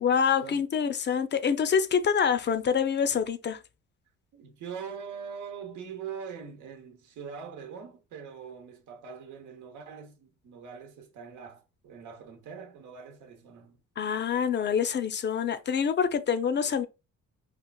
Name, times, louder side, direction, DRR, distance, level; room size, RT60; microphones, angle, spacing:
voice 1, 0.0-3.6 14.0-16.9, left 7 dB, 35° left, 0.5 m, -26 dB
voice 2, 4.3-13.8, right 6 dB, 80° right, 0.9 m, -42 dB
4.4 x 2.4 x 2.3 m
cardioid pair, 90°, 30 cm